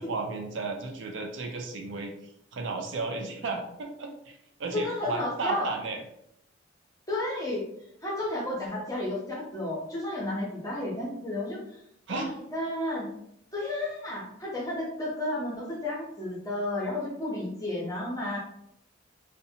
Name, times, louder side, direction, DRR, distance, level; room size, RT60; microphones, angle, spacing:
voice 1, 0.0-2.1 2.5-6.0 12.1-12.3, right 3 dB, 70° right, 3 dB, 0.4 m, -34 dB
voice 2, 4.7-5.7 7.1-7.6 8.0-11.6 12.1-13.1 13.5-18.4, left 1 dB, 20° left, -4 dB, 0.7 m, -32 dB
2.6 x 2.1 x 2.7 m, 0.75 s
head